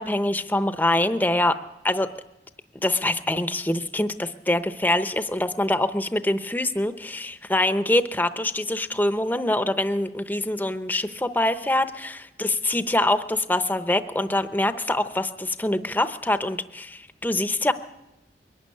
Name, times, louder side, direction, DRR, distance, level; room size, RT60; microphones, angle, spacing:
voice 1, 0.0-1.5 1.8-2.1 2.8-17.7, left 1 dB, 10° left, 10 dB, 0.8 m, -24 dB
22.5 x 12.0 x 9.7 m, 0.95 s
head